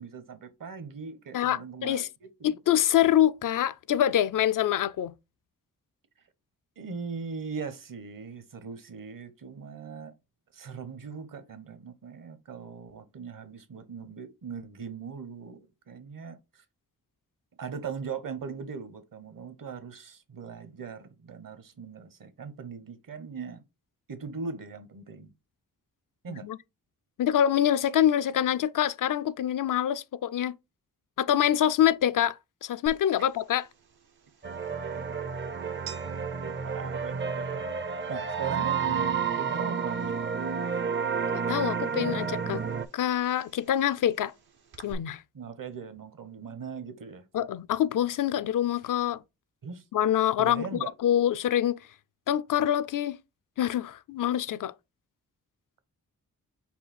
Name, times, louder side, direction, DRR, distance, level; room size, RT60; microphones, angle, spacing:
voice 1, 0.0-2.6 6.8-10.1 10.5-16.6 17.6-23.6 24.1-25.3 26.2-26.5 36.4-37.6 38.1-38.8 39.4-40.3 45.3-47.3 49.6-49.8 50.4-50.9, right 6 dB, 60° right, 0.9 m, -40 dB
voice 2, 1.3-2.1 2.4-5.1 26.3-26.6 27.2-30.6 31.2-32.4 32.6-33.6 41.3-42.6 42.9-44.3 44.8-45.2 47.3-49.2 49.9-51.8 52.3-53.2 53.6-54.7, left 11 dB, 60° left, 0.5 m, -25 dB
sound 1, 32.9-44.9, right 5 dB, 85° right, 1.1 m, -52 dB
sound 2, 34.4-42.8, right 6 dB, 30° right, 0.5 m, -30 dB
5.5 x 2.3 x 4.1 m
cardioid pair, 55°, 37 cm